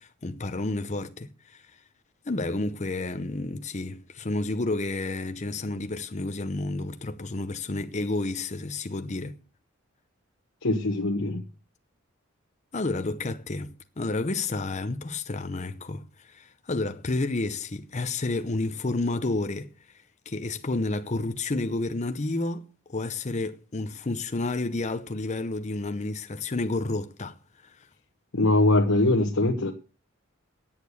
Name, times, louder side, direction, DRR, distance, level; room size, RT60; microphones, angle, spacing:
voice 1, 0.0-1.6 2.2-9.4 12.7-19.7 20.3-27.8, left 2 dB, 35° left, 0.7 m, -30 dB
voice 2, 10.6-11.4 28.3-29.7, left 2 dB, 70° left, 1.2 m, -22 dB
8.8 x 8.4 x 8.3 m
head